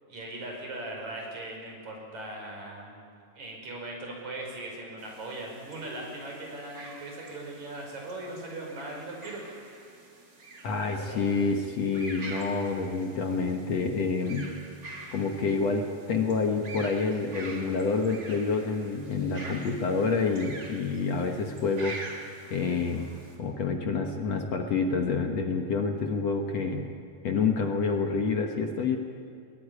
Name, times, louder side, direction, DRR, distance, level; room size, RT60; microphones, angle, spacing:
voice 1, 0.1-3.0 3.4-9.4 10.8-11.5, right 2 dB, 55° right, 0 dB, 6.9 m, -39 dB
sound 1, 5.0-23.4, right 2 dB, 30° right, 3.6 m, -46 dB
voice 2, 10.6-14.5 15.1-22.0 22.5-23.1 23.4-26.9 27.2-29.0, left 4 dB, 55° left, 3 dB, 2.3 m, -28 dB
22.0 x 21.5 x 9.8 m, 2.3 s
omnidirectional pair, 3.9 m